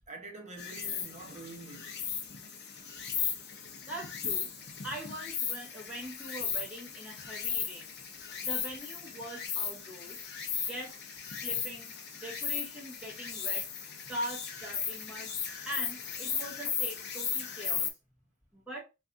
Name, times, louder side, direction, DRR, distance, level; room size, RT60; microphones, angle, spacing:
voice 1, 0.1-2.1, right 3 dB, 35° right, 0.8 m, -46 dB
Insect, 0.6-17.9, left 6 dB, 55° left, 0.7 m, -36 dB
voice 2, 3.9-7.9 8.4-10.2 10.6-10.9 11.4-13.7 14.1-15.3 15.7-17.9 18.5-18.8, right 1 dB, 5° right, 1.0 m, -42 dB
2.6 x 2.5 x 3.3 m
head